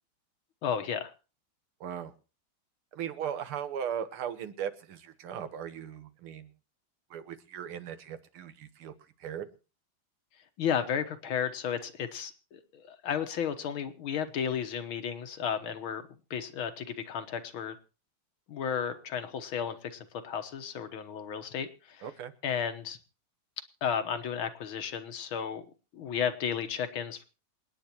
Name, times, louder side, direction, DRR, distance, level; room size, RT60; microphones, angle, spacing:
voice 1, 0.6-1.1 10.6-16.0 16.3-17.8 18.5-22.1 22.4-23.0 23.8-25.7 25.9-27.3, left 7 dB, 75° left, 8 dB, 2.0 m, -33 dB
voice 2, 1.8-2.1 2.9-6.5 7.1-8.9 9.2-9.5 22.0-22.3, right 9 dB, 90° right, 11 dB, 2.0 m, -38 dB
27.5 x 9.4 x 3.0 m, 0.33 s
omnidirectional pair, 2.3 m